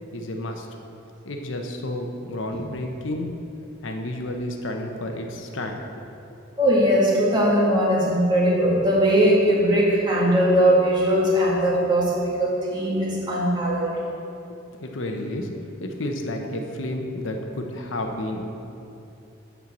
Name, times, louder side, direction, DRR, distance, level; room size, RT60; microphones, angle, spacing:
voice 1, 0.1-0.7 1.2-3.3 3.8-6.0 14.5-15.5 15.8-18.5, left 1 dB, 75° left, 3 dB, 0.8 m, -31 dB
voice 2, 6.6-13.9, equal, 25° right, -6 dB, 1.9 m, -20 dB
8.5 x 4.6 x 7.1 m, 2.8 s
head